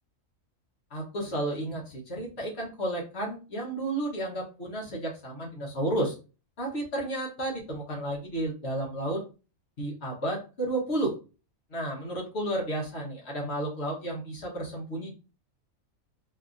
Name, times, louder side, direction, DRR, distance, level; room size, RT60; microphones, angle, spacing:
voice 1, 0.9-6.1 6.6-9.2 9.8-11.1 11.7-15.1, right 1 dB, 50° left, -3 dB, 1.1 m, -32 dB
3.4 x 2.5 x 2.4 m, 0.33 s
omnidirectional pair, 1.5 m